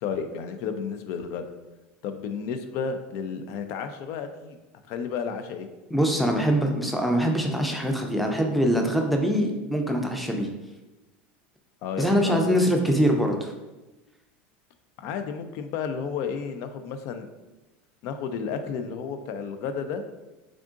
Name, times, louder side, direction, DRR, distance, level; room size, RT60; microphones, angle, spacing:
voice 1, 0.0-1.5 2.0-4.6 4.9-5.7 11.8-12.6 15.0-17.3 18.0-20.0, left 6 dB, 60° left, 8 dB, 0.4 m, -32 dB
voice 2, 5.9-10.5 12.0-13.5, equal, ahead, 2 dB, 0.5 m, -23 dB
3.6 x 3.6 x 2.4 m, 1.1 s
supercardioid pair, 115°, 6 cm